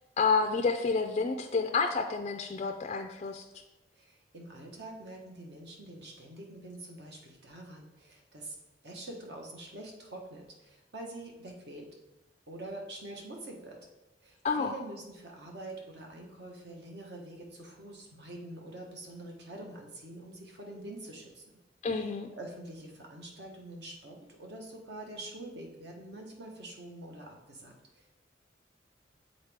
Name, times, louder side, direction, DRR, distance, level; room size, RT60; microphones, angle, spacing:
voice 1, 0.2-3.4 14.4-14.7 21.8-22.3, left 4 dB, 35° left, 4 dB, 0.3 m, -29 dB
voice 2, 3.9-8.6 8.8-11.9 12.5-13.8 14.2-21.4 22.0-28.2, right 1 dB, 60° right, 0 dB, 1.2 m, -45 dB
8.0 x 3.9 x 3.5 m, 0.97 s
head